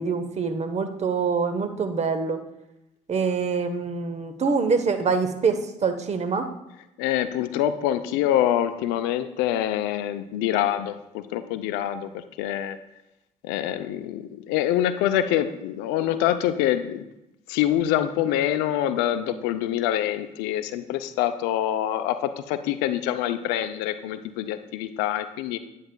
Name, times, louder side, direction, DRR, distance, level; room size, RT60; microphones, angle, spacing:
voice 1, 0.0-2.4 3.1-6.5, right 5 dB, 40° right, 8 dB, 0.9 m, -25 dB
voice 2, 7.0-12.8 13.4-17.1 17.5-25.6, left 11 dB, 80° left, 11 dB, 0.5 m, -25 dB
9.6 x 7.3 x 2.2 m, 0.89 s
hypercardioid pair, 55°, 17 cm